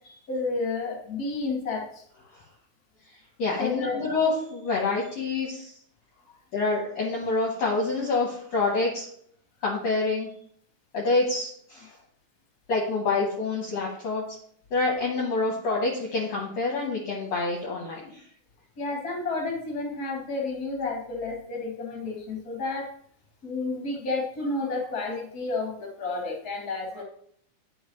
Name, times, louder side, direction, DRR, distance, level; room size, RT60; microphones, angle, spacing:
voice 1, 0.3-1.8 3.6-4.0 18.8-22.9 23.4-27.0, left 3 dB, 30° left, -1 dB, 2.1 m, -31 dB
voice 2, 3.4-5.7 6.5-9.1 9.6-10.3 10.9-11.9 12.7-14.3 14.7-18.1, left 3 dB, 60° left, -3 dB, 2.1 m, -27 dB
9.9 x 5.4 x 3.1 m, 0.63 s
omnidirectional pair, 3.8 m